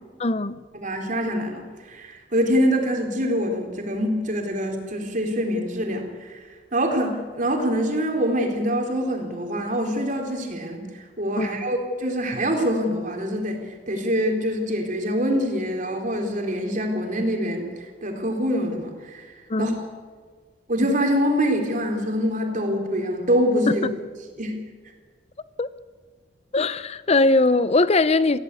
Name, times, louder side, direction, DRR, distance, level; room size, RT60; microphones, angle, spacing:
voice 1, 0.2-0.6 11.4-11.5 19.5-19.8 23.7-23.9 25.6-25.7 26.5-28.4, left 2 dB, 35° left, 0.7 m, -20 dB
voice 2, 0.7-6.4 6.7-10.9 11.2-17.7 18.0-19.3 19.6-19.7 20.7-23.9 24.4-24.5, equal, 45° right, 4.0 m, -25 dB
23.5 x 16.0 x 8.4 m
head